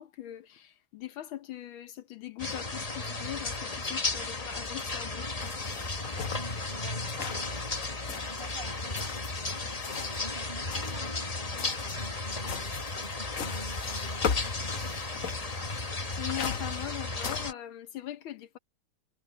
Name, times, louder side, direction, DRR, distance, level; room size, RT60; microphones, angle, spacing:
voice 1, 0.0-5.5 16.2-18.6, left 12 dB, 75° left, 1.7 m, -41 dB
sound 1, 2.4-17.5, left 3 dB, 25° left, 1.0 m, -34 dB
sound 2, 5.4-10.3 10.6-17.5, left 7 dB, 50° left, 1.0 m, -39 dB
voice 2, 6.3-7.7 8.3-12.7 13.0-15.3, right 1 dB, 25° right, 7.1 m, -48 dB
omnidirectional pair, 2.3 m